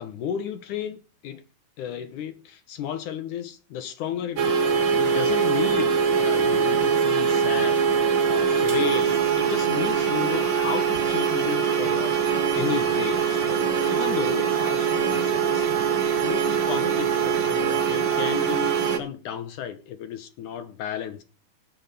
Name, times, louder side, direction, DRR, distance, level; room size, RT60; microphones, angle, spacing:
voice 1, 0.0-1.4 1.8-15.7 16.2-21.2, left 9 dB, 70° left, 2.3 m, -33 dB
sound 1, 4.4-19.0, right 6 dB, 45° right, 1.7 m, -23 dB
18.0 x 6.2 x 5.3 m
omnidirectional pair, 4.1 m